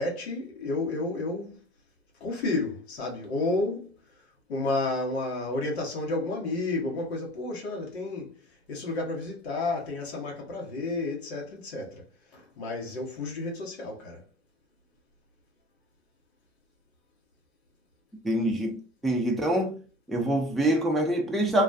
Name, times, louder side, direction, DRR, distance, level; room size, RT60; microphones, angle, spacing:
voice 1, 0.0-1.6 2.2-3.9 4.5-8.4 8.7-12.0 12.3-14.2, left 2 dB, 80° left, 0.9 m, -31 dB
voice 2, 18.2-19.8 20.1-21.6, right 1 dB, ahead, 0.5 m, -25 dB
2.3 x 2.2 x 2.4 m
hypercardioid pair, 90°, 31 cm